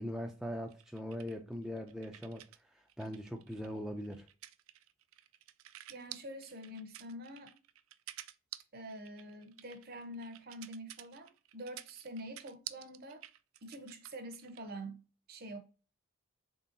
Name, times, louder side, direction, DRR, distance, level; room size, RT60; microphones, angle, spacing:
voice 1, 0.0-2.4 3.0-4.3, equal, ahead, 0.4 m, -40 dB
sound 1, 0.7-2.6 2.9-14.7, right 14 dB, 80° right, 0.3 m, -51 dB
voice 2, 5.9-7.5 8.7-13.2 13.6-15.0 15.3-15.6, right 1 dB, 50° right, 0.7 m, -46 dB
3.8 x 3.3 x 2.7 m
head